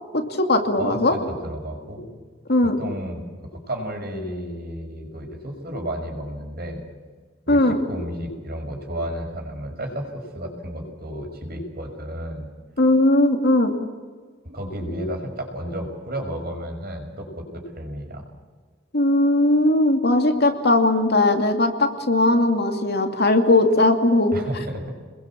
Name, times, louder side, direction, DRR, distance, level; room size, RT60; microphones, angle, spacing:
voice 1, 0.1-1.1 2.5-2.8 7.5-7.8 12.8-13.7 18.9-24.3, left 2 dB, 55° left, 5 dB, 2.6 m, -18 dB
voice 2, 0.8-2.1 2.8-3.2 3.5-6.8 7.5-12.5 14.4-18.2 24.3-24.9, equal, 50° right, 2 dB, 5.9 m, -32 dB
28.5 x 21.5 x 7.4 m, 1.5 s
head